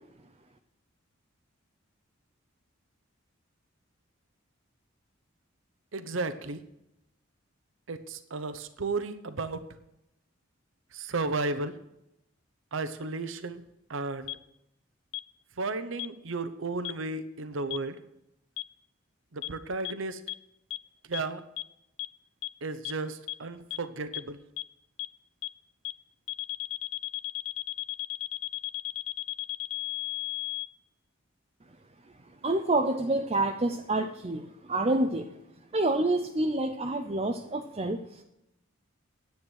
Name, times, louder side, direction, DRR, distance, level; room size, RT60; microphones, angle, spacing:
voice 1, 5.9-6.6 7.9-9.6 10.9-11.7 12.7-13.6 13.9-14.4 15.6-18.0 19.3-20.2 21.1-21.4 22.6-24.4, right 3 dB, 70° right, 11 dB, 0.8 m, -33 dB
sound 1, 14.3-14.4 15.1-15.2 16.0-16.1 16.8-16.9 17.7-17.8 18.6-18.7 19.4-19.5 19.8-19.9 20.3-20.4 20.7-20.8 21.1-21.2 21.6-21.7 22.0-22.1 22.4-22.5 22.8-22.9 23.3-23.4 23.7-23.8 24.1-24.2 24.6-24.7 25.0-25.1 25.4-25.5 25.8-25.9 26.3-30.7, left 22 dB, 75° left, 0.4 m, -34 dB
voice 2, 32.4-35.3 35.7-38.0, right 2 dB, 30° right, 6 dB, 0.6 m, -27 dB
9.8 x 9.3 x 6.3 m, 0.84 s
head